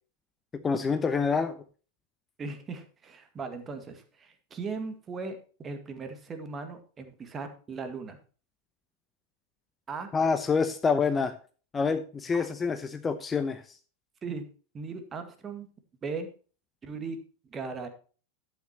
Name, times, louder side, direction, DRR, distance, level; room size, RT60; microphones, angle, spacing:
voice 1, 0.5-1.6 10.1-11.3 11.7-13.6, left 5 dB, 15° left, 9 dB, 0.8 m, -27 dB
voice 2, 2.4-8.2 9.9-10.1 12.3-12.5 14.2-14.5 14.7-15.7 16.0-16.3 16.8-17.2 17.5-17.9, right 4 dB, 20° right, 7 dB, 1.9 m, -38 dB
11.5 x 9.2 x 2.9 m, 0.37 s
figure-of-eight pair, 90°, 0 cm